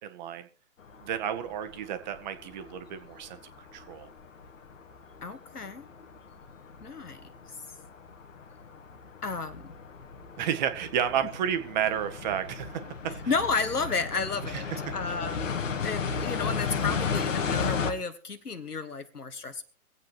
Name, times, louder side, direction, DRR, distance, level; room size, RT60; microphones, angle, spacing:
voice 1, 0.0-0.5 1.0-3.4 3.7-4.1 10.4-12.8 14.4-14.9, right 9 dB, 30° right, 9 dB, 1.1 m, -31 dB
sound 1, 0.8-17.9, left 5 dB, 55° left, 1.6 m, -35 dB
voice 2, 5.2-5.8 6.8-7.3 9.2-9.7 13.3-19.6, left 4 dB, 85° left, 10 dB, 1.7 m, -32 dB
24.0 x 8.3 x 3.0 m, 0.38 s
figure-of-eight pair, 130°, 45 cm